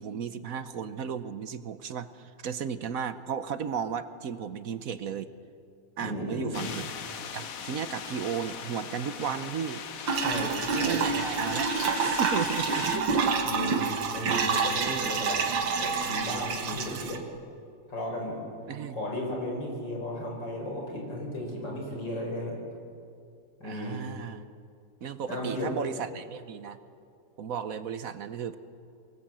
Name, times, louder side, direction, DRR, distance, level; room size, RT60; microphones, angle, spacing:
voice 1, 0.0-5.3 6.0-6.9 7.3-9.8 10.7-11.7 12.0-13.3 14.8-15.1 18.7-19.0 23.6-24.4 25.0-26.8 27.4-28.6, right 7 dB, 55° right, 12 dB, 1.1 m, -34 dB
voice 2, 6.0-6.7 10.2-11.1 13.4-15.4 15.8-17.2 17.9-18.4 18.9-22.6 23.6-24.0 25.3-25.7, left 1 dB, 70° left, 0 dB, 5.6 m, -35 dB
sound 1, 6.5-13.0, left 7 dB, 55° left, 1.3 m, -39 dB
sound 2, 10.1-17.2, right 5 dB, 75° right, 2.1 m, -28 dB
23.5 x 19.5 x 7.5 m, 2.5 s
omnidirectional pair, 2.1 m